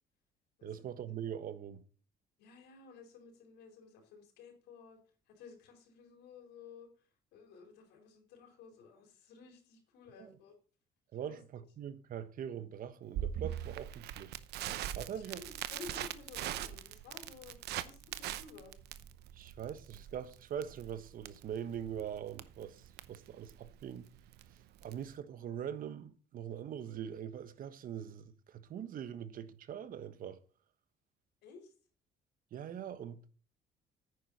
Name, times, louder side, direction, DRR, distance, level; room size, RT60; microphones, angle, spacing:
voice 1, 0.6-1.8 10.2-10.3 11.1-14.4 14.9-15.4 19.3-24.1 24.5-30.4 32.5-33.3, right 9 dB, 55° right, 1.2 m, -42 dB
voice 2, 2.4-5.0 5.3-10.5 11.2-11.4 15.1-18.8 31.4-31.7, left 5 dB, 85° left, 4.5 m, -54 dB
Crackle, 13.1-25.1, right 11 dB, 80° right, 0.9 m, -42 dB
9.8 x 9.6 x 4.2 m
cardioid pair, 110°, 17 cm